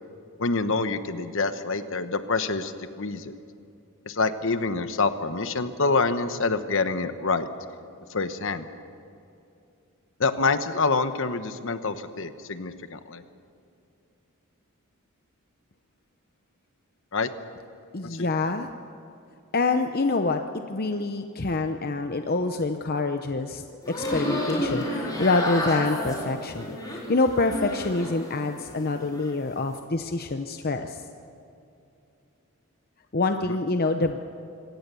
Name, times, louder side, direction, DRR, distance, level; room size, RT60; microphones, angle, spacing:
voice 1, 0.4-3.3 4.1-7.5 8.1-8.6 10.2-13.2 17.1-17.3 18.0-18.3, left 3 dB, 60° left, 10 dB, 1.1 m, -26 dB
voice 2, 17.9-18.7 19.5-20.4 20.7-31.0 33.1-34.2, left 3 dB, 45° left, 7 dB, 0.8 m, -26 dB
sound 1, 23.8-28.3 28.6-29.3, left 1 dB, 15° left, 4.1 m, -31 dB
25.0 x 17.0 x 7.0 m, 2.6 s
head